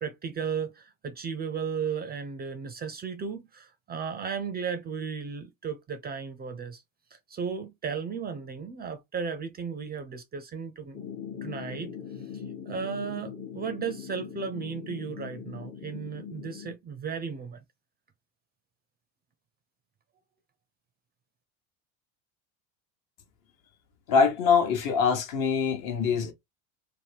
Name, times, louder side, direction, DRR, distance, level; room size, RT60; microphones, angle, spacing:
voice 1, 0.0-6.8 7.3-11.0 11.4-12.0 12.3-17.6, right 6 dB, 25° right, 0.4 m, -35 dB
sound 1, 10.9-16.7, left 7 dB, 25° left, 0.5 m, -41 dB
voice 2, 24.1-26.3, left 6 dB, 50° left, 0.9 m, -24 dB
2.8 x 2.1 x 3.3 m
hypercardioid pair, 85°, 41 cm